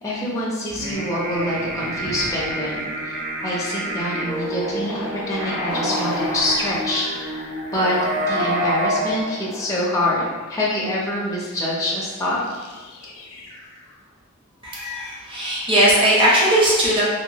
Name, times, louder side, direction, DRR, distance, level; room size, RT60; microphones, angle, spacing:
voice 1, 0.0-7.1 7.7-12.4, left 1 dB, 15° left, -6 dB, 0.5 m, -25 dB
sound 1, 0.7-3.0 4.2-10.6 11.3-11.6 12.2-14.0 14.7-14.9 15.3-15.8, left 1 dB, 90° left, 0.5 m, -36 dB
sound 2, 0.7-9.2, equal, 50° right, 0.4 m, -28 dB
voice 2, 14.6-17.0, right 1 dB, 25° right, -6 dB, 0.7 m, -18 dB
2.9 x 2.2 x 2.7 m, 1.4 s
head